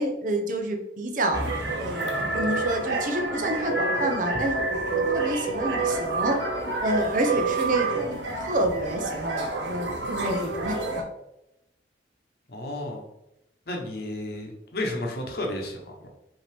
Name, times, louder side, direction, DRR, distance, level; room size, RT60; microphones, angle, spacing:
voice 1, 0.0-1.5 1.8-6.4 6.8-11.0, right 1 dB, 45° right, 4 dB, 0.7 m, -28 dB
sound 1, 1.3-11.0, right 3 dB, 85° right, 0.9 m, -28 dB
voice 2, 12.5-13.0 13.7-16.1, left 1 dB, 55° left, 1 dB, 0.9 m, -32 dB
5.4 x 2.9 x 3.4 m, 0.85 s
head